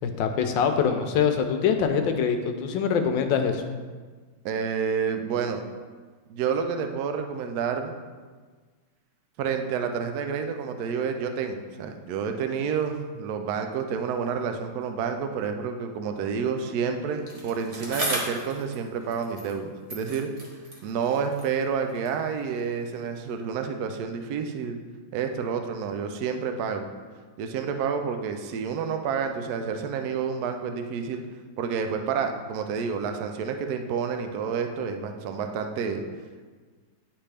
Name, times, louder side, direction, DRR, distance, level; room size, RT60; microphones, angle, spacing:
voice 1, 0.0-3.6, left 6 dB, 75° left, 6 dB, 1.2 m, -24 dB
voice 2, 4.4-5.6 6.3-7.9 9.4-20.3 20.8-24.8 25.1-26.9 27.4-31.2 31.6-36.0, right 6 dB, 75° right, 6 dB, 0.9 m, -29 dB
Bicycle, 17.3-19.6 19.9-22.3 23.0-23.1, right 1 dB, 30° right, 0.6 m, -36 dB
9.9 x 3.5 x 3.3 m, 1.5 s
omnidirectional pair, 2.3 m